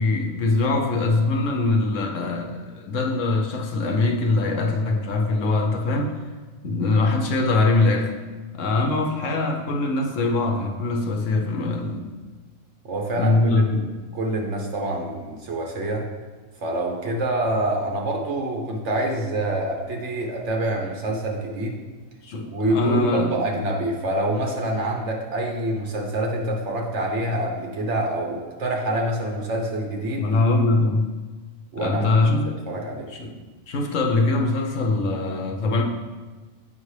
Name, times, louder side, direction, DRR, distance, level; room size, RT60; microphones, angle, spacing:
voice 1, 0.0-6.2 6.6-8.1 8.5-12.2 13.2-13.8 22.2-23.4 30.2-31.1 31.8-32.5 33.1-33.3 33.7-35.8, left 3 dB, 70° left, 2 dB, 1.1 m, -22 dB
voice 2, 12.8-13.8 14.1-16.0 16.6-21.8 22.4-30.3 31.7-33.1, right 1 dB, 60° right, 0 dB, 1.3 m, -26 dB
7.8 x 5.5 x 3.2 m, 1.4 s
omnidirectional pair, 1.4 m